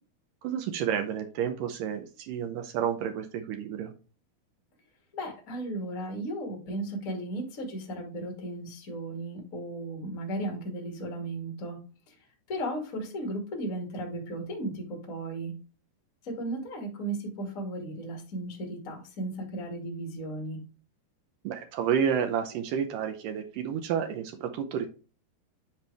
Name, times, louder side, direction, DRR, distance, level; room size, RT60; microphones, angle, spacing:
voice 1, 0.4-3.9 21.4-24.9, right 8 dB, 90° right, 6 dB, 1.9 m, -30 dB
voice 2, 5.1-11.8 12.1-12.2 12.5-15.5 16.2-20.6, right 1 dB, 25° left, 1 dB, 1.8 m, -35 dB
10.5 x 4.6 x 3.4 m, 0.35 s
omnidirectional pair, 5.0 m